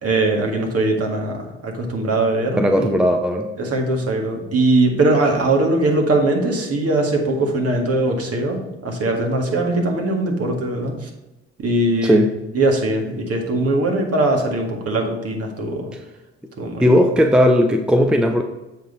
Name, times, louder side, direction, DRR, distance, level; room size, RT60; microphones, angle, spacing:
voice 1, 0.0-2.9 3.6-11.1 11.6-12.3 12.5-15.9 16.6-17.0, right 2 dB, 40° right, 2 dB, 1.9 m, -21 dB
voice 2, 2.6-3.5 12.0-12.3 16.8-18.4, equal, ahead, 5 dB, 0.6 m, -16 dB
7.3 x 5.3 x 4.0 m, 1.0 s
hypercardioid pair, 55°, 37 cm